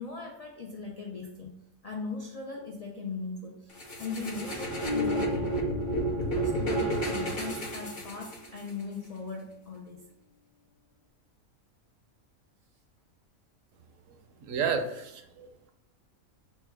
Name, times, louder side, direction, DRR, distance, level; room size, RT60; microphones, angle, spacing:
voice 1, 0.0-1.5 1.8-5.5 6.2-10.1, left 4 dB, 75° left, -1 dB, 0.3 m, -39 dB
sound 1, 3.8-8.7, right 2 dB, 45° left, 1.1 m, -31 dB
Bass guitar, 4.8-7.5, left 5 dB, 25° left, 0.5 m, -36 dB
voice 2, 14.1-15.7, right 6 dB, 70° right, 7 dB, 0.9 m, -33 dB
4.1 x 2.3 x 4.5 m, 0.84 s
omnidirectional pair, 1.4 m